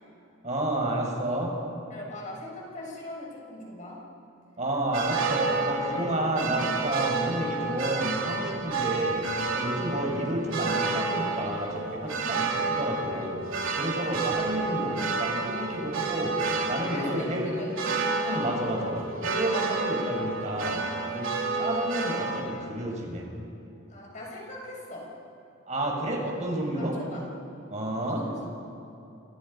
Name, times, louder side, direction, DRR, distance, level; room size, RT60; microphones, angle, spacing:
voice 1, 0.4-1.5 4.6-9.2 9.5-13.4 13.7-16.3 16.7-17.6 18.2-20.8 21.1-21.3 21.5-23.3 25.7-26.9 27.7-28.2, right 1 dB, 35° right, 0 dB, 6.3 m, -30 dB
voice 2, 1.9-4.0 14.0-14.2 16.7-18.1 23.9-25.1 26.8-27.2 28.0-28.4, left 1 dB, 35° left, -3 dB, 7.0 m, -41 dB
sound 1, 4.9-22.4, right 3 dB, 80° right, 2.9 m, -30 dB
29.5 x 28.5 x 5.6 m, 2.9 s
head